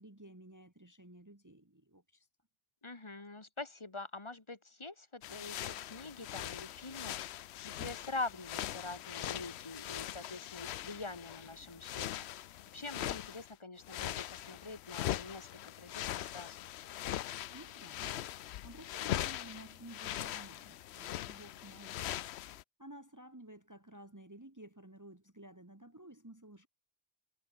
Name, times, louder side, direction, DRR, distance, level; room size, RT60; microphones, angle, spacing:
voice 1, 0.0-2.3 17.5-18.2 18.6-22.2 22.8-26.7, right 1 dB, 15° right, 1.7 m, -53 dB
voice 2, 2.8-7.3 7.6-12.3 12.7-16.6, left 3 dB, 25° left, 1.6 m, -45 dB
sound 1, 5.2-13.5 13.8-22.6, left 13 dB, 70° left, 0.8 m, -41 dB
omnidirectional pair, 1.2 m